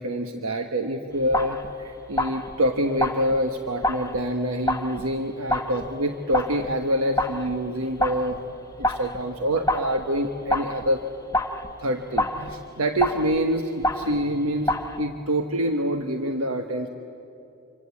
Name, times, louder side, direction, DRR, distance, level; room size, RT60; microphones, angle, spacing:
voice 1, 0.0-8.4 8.8-11.0 11.8-16.9, equal, 85° right, 5 dB, 1.3 m, -26 dB
sound 1, 1.2-7.7 8.0-14.4 14.7-15.0, left 1 dB, 15° left, 1.0 m, -29 dB
26.5 x 24.5 x 8.5 m, 2.7 s
head